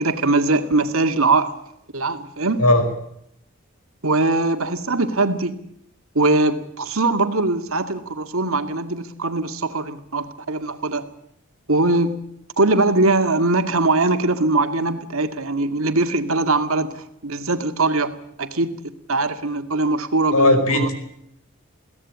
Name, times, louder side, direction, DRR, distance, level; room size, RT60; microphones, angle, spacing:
voice 1, 0.0-1.5 1.9-2.6 4.0-5.5 6.1-11.0 11.7-12.2 12.6-18.1 18.4-18.7 19.1-20.9, right 2 dB, 75° right, 7 dB, 2.2 m, -21 dB
voice 2, 20.3-20.9, left 1 dB, 80° left, 9 dB, 5.0 m, -16 dB
22.5 x 17.0 x 8.7 m, 0.76 s
head